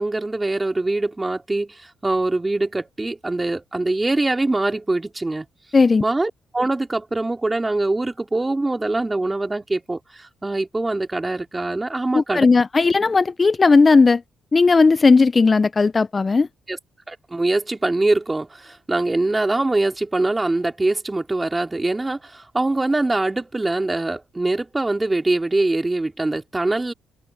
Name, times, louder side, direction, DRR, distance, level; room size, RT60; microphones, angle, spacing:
voice 1, 0.0-5.4 6.0-12.5 16.7-16.8 17.1-26.9, right 2 dB, 15° right, 3.2 m, -23 dB
voice 2, 5.7-6.0 12.1-14.2 14.5-16.5, left 4 dB, 30° left, 0.4 m, -16 dB
open air
cardioid pair, 90°, 0 cm